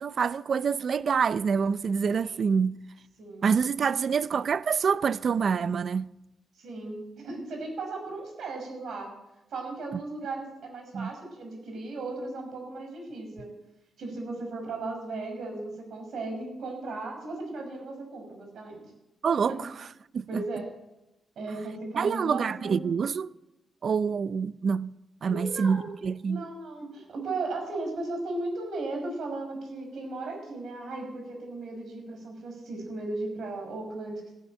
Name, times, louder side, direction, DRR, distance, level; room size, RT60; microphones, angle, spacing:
voice 1, 0.0-2.7 3.4-6.1 10.9-11.1 19.2-19.7 20.1-20.4 22.0-23.3 23.8-24.9 25.2-26.4, right 6 dB, 55° right, 0.5 m, -26 dB
voice 2, 6.6-9.1 9.5-13.5 14.0-18.8 19.5-19.6 20.3-20.7 21.4-22.8 25.3-26.0 26.3-34.3, right 2 dB, 75° right, 5.5 m, -36 dB
15.0 x 9.8 x 7.7 m
cardioid pair, 100°, 0 cm